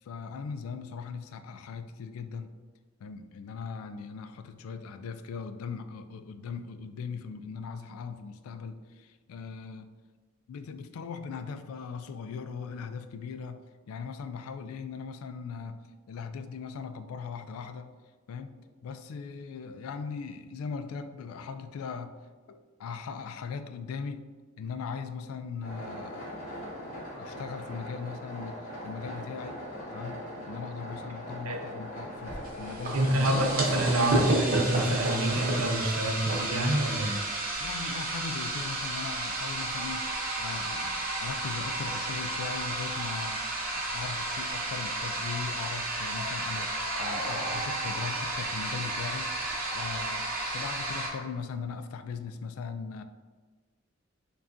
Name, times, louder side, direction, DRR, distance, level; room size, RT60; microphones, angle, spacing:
voice 1, 0.0-2.5 3.0-9.9 10.5-17.9 18.3-22.2 22.5-24.3 24.6-26.4 27.2-29.6 29.9-33.3 37.3-43.4 43.7-53.0, left 5 dB, 75° left, 10 dB, 0.3 m, -39 dB
sound 1, 25.6-34.4, equal, 40° left, 1.0 m, -40 dB
sound 2, 32.3-51.1, right 2 dB, 45° right, 0.8 m, -32 dB
voice 2, 32.9-37.2, right 1 dB, 75° right, 2 dB, 0.6 m, -27 dB
4.8 x 2.3 x 2.6 m, 1.4 s
head